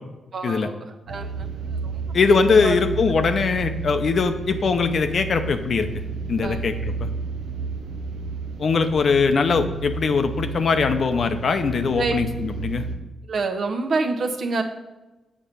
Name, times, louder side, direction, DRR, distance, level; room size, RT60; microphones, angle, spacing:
voice 1, 0.3-0.7 1.1-1.5 1.8-1.9 2.6-2.7 6.4-6.7 12.0-12.1 13.3-14.6, right 3 dB, 60° right, 4 dB, 1.0 m, -26 dB
sound 1, 1.1-13.0, right 4 dB, 90° right, 0.8 m, -32 dB
voice 2, 2.1-5.9 6.3-6.7 7.0-7.1 8.6-12.8, left 5 dB, 55° left, 8 dB, 0.7 m, -21 dB
7.5 x 4.4 x 6.8 m, 1.1 s
cardioid pair, 85°, 0 cm